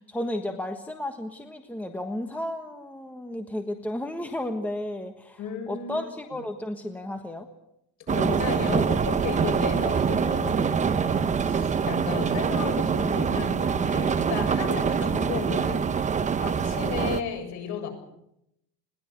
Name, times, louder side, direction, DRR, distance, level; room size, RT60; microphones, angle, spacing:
voice 1, 0.1-5.4 5.7-7.5, left 1 dB, 5° left, 5 dB, 1.4 m, -33 dB
voice 2, 5.4-6.1 8.0-16.1 16.4-17.9, left 7 dB, 55° left, 4 dB, 7.3 m, -34 dB
sound 1, 8.1-17.2, right 6 dB, 20° right, 0.9 m, -25 dB
21.5 x 18.5 x 8.3 m, 0.80 s
cardioid pair, 160°, 35 cm